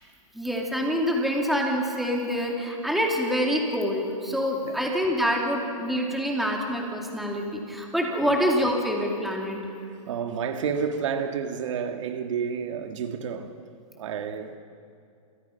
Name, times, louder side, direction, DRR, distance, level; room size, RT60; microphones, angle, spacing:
voice 1, 0.3-9.6, equal, ahead, 2.5 m, -26 dB
voice 2, 9.9-13.5 14.0-14.6, right 6 dB, 60° right, 2.0 m, -30 dB
30.0 x 28.5 x 5.8 m
hypercardioid pair, 165°, 18 cm